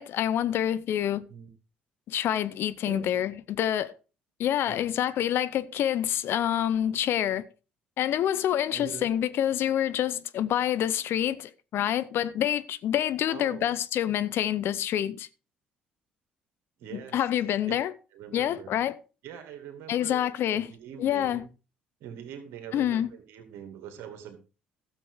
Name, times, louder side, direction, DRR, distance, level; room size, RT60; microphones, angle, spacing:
voice 1, 0.0-1.2 2.1-3.9 4.4-7.4 8.0-15.3 16.9-17.9 18.3-19.0 19.9-20.7 21.0-21.4 22.7-23.1, left 11 dB, 60° left, 0.8 m, -27 dB
voice 2, 8.7-9.1 13.3-13.7 16.8-17.2 17.7-17.8 18.1-18.7 19.2-21.5 22.0-24.4, right 9 dB, 65° right, 2.4 m, -43 dB
12.5 x 7.5 x 4.8 m
hypercardioid pair, 55°, 5 cm